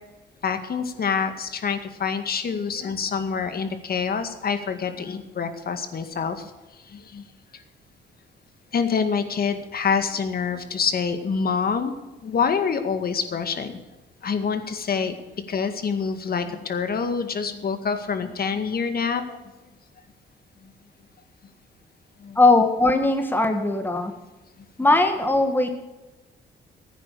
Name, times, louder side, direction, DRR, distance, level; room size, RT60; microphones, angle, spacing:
voice 1, 0.4-6.5 6.9-7.2 8.7-11.9 12.2-13.8 14.2-15.1 15.5-19.2 22.2-22.4, left 6 dB, 50° left, 8 dB, 2.0 m, -26 dB
voice 2, 22.4-24.1 24.8-25.7, left 2 dB, 10° left, 6 dB, 1.8 m, -19 dB
15.5 x 9.5 x 6.8 m, 1.1 s
cardioid pair, 90°, 20 cm